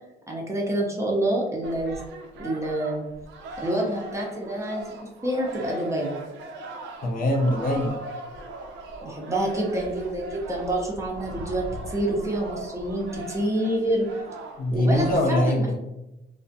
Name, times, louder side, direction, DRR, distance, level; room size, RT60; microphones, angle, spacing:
voice 1, 0.3-2.0 2.4-3.0 3.6-4.8 5.2-6.1 9.0-14.1 14.7-15.8, right 1 dB, 15° right, -2 dB, 0.6 m, -27 dB
sound 1, 1.6-15.2, right 1 dB, 80° right, 0.4 m, -39 dB
voice 2, 7.0-8.0 14.6-15.8, left 1 dB, 50° left, 1 dB, 0.5 m, -23 dB
2.3 x 2.1 x 2.6 m, 0.93 s
cardioid pair, 100°, 19 cm